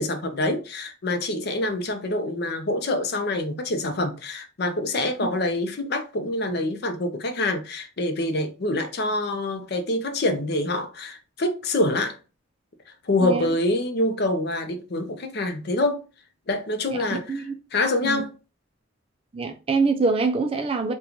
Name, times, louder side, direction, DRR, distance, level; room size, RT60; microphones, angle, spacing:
voice 1, 0.0-12.2 13.0-16.0 16.5-17.4 17.7-18.3, left 2 dB, 50° left, 0.5 m, -26 dB
voice 2, 17.1-17.5 18.0-18.2 19.3-20.9, right 4 dB, 30° right, 0.4 m, -24 dB
3.7 x 2.3 x 2.9 m
head